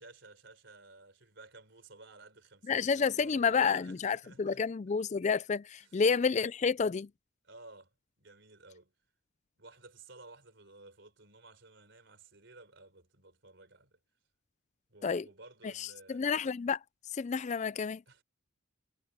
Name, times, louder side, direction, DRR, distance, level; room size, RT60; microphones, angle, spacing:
voice 1, 0.0-4.7 5.8-6.0 7.4-7.9 8.2-8.9 9.6-14.0 14.9-16.3 18.1-18.2, right 3 dB, 60° right, 4.6 m, -55 dB
voice 2, 2.7-7.1 15.0-15.2 15.8-16.8 17.1-18.0, left 5 dB, 35° left, 0.4 m, -30 dB
head